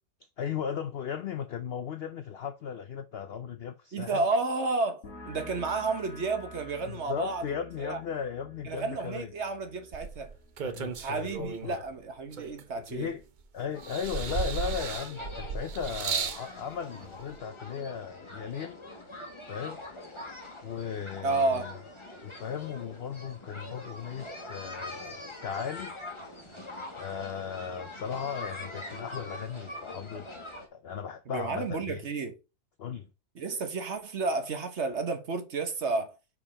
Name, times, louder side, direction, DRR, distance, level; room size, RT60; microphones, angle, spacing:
voice 1, 0.4-4.3 6.8-9.3 10.6-11.8 12.9-13.2 13.5-18.8 19.5-19.8 20.6-21.7 22.2-25.9 26.9-30.3 30.7-32.0 32.8-33.1, left 7 dB, 80° left, 0.5 m, -36 dB
voice 2, 3.9-8.0 8.6-10.3 11.0-13.1 21.2-21.6 31.3-32.3 33.3-36.1, right 3 dB, 50° right, 1.2 m, -31 dB
sound 1, 5.0-12.3, left 1 dB, 55° left, 2.7 m, -50 dB
sound 2, 9.9-11.8 12.3-13.4 13.8-16.5 17.4-17.5, right 6 dB, 90° right, 0.4 m, -35 dB
sound 3, 13.7-30.7, left 1 dB, 20° left, 1.6 m, -44 dB
5.2 x 4.9 x 5.5 m
omnidirectional pair, 1.7 m